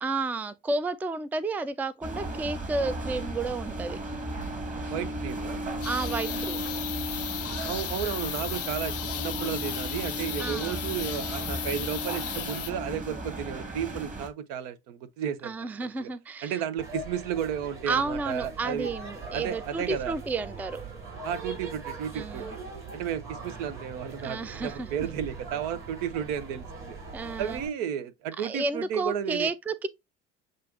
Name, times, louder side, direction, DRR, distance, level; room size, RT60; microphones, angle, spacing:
voice 1, 0.0-4.0 5.8-6.7 10.4-10.8 15.4-16.6 17.8-20.8 22.1-22.6 24.2-24.9 27.1-27.6 28.4-29.9, right 3 dB, 5° right, 0.3 m, -31 dB
sound 1, 2.0-14.3, right 1 dB, 25° right, 1.8 m, -35 dB
voice 2, 4.9-5.6 7.7-16.1 16.4-18.9 19.3-20.1 21.2-22.6 22.9-27.0 27.4-29.5, right 9 dB, 70° right, 0.7 m, -33 dB
sound 2, 5.8-12.7, left 16 dB, 50° left, 0.5 m, -36 dB
sound 3, 16.8-27.7, right 4 dB, 40° right, 3.0 m, -41 dB
7.5 x 2.5 x 2.4 m
hypercardioid pair, 70°, 31 cm